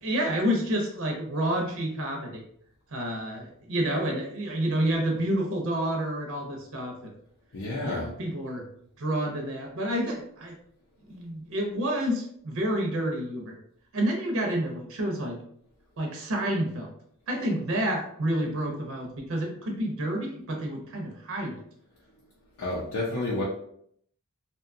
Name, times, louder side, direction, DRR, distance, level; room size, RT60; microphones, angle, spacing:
voice 1, 0.0-2.4 2.9-7.0 7.8-8.6 9.0-10.5 11.1-13.5 13.9-15.4 16.0-16.9 17.3-21.6, right 1 dB, 60° right, 1 dB, 0.6 m, -29 dB
voice 2, 7.5-8.1 22.6-23.4, left 2 dB, 70° left, -6 dB, 0.6 m, -30 dB
2.7 x 2.2 x 2.5 m, 0.66 s
head